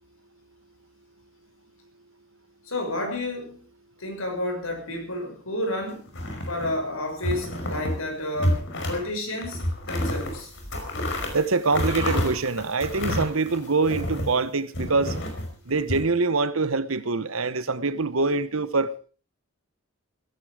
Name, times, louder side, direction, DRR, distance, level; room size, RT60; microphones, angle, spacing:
voice 1, 2.6-3.6 4.0-6.1 6.5-10.5, left 1 dB, 80° left, 6.1 m, -31 dB
sound 1, 6.1-6.8 7.2-8.0 8.3-9.0 9.4-14.4 14.7-16.0, left 1 dB, 60° left, 5.1 m, -29 dB
voice 2, 11.3-15.2 15.7-18.9, right 3 dB, 80° right, 1.1 m, -24 dB
16.0 x 14.5 x 5.0 m
head